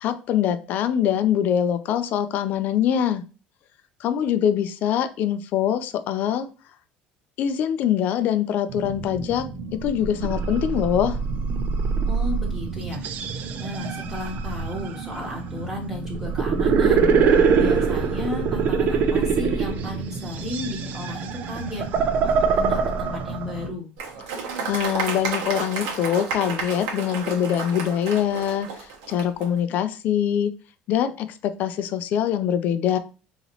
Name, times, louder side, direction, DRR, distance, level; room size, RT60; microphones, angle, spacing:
voice 1, 0.0-3.2 4.0-6.5 7.4-9.4 9.8-11.2 24.7-28.7 29.1-30.5 30.9-33.0, left 9 dB, 50° left, 11 dB, 0.5 m, -23 dB
sound 1, 8.7-23.7, right 5 dB, 45° right, 0.5 m, -24 dB
voice 2, 12.1-13.0 13.6-21.8 22.2-23.9, left 2 dB, 15° right, -3 dB, 1.1 m, -34 dB
Applause, 24.0-29.5, right 5 dB, 90° right, 1.1 m, -31 dB
4.0 x 3.0 x 2.9 m, 0.34 s
cardioid pair, 145°, 4 cm